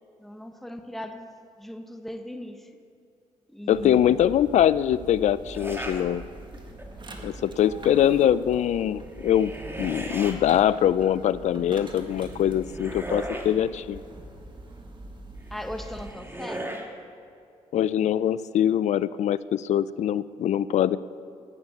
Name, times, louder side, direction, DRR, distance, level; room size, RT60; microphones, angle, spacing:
voice 1, 0.2-1.3 1.6-2.7 3.5-4.2 15.5-16.9, left 1 dB, ahead, 6 dB, 1.1 m, -38 dB
voice 2, 3.7-6.2 7.2-9.5 9.8-14.0 17.7-21.0, left 10 dB, 65° left, 18 dB, 0.4 m, -23 dB
sound 1, 3.7-16.1, right 2 dB, 40° right, 1.8 m, -43 dB
sound 2, 5.5-6.0 6.5-7.0 9.0-10.4 12.1-13.5 15.5-16.9, right 1 dB, 20° right, 2.0 m, -37 dB
11.5 x 8.9 x 7.1 m, 2.5 s
supercardioid pair, 60°, 13 cm